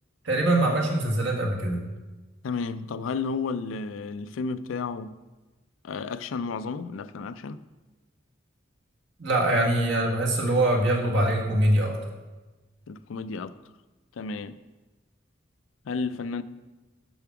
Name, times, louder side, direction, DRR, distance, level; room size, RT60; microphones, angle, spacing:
voice 1, 0.2-1.8 9.2-12.0, right 1 dB, 70° right, -1 dB, 1.7 m, -23 dB
voice 2, 2.4-5.1 5.8-7.6 12.9-13.5 14.2-14.6 15.9-16.4, left 4 dB, 90° left, 13 dB, 0.4 m, -32 dB
7.1 x 5.9 x 5.8 m, 1.2 s
head